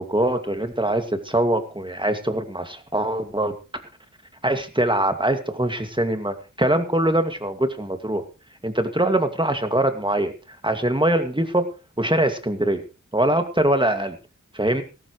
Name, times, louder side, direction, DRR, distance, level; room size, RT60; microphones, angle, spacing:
voice 1, 0.0-3.6 4.4-8.2 8.6-10.3 10.6-11.6 12.0-12.8 13.1-14.2 14.5-14.8, right 1 dB, 15° right, 7 dB, 2.1 m, -23 dB
18.0 x 14.0 x 3.1 m, 0.32 s
wide cardioid pair, 55°, 31 cm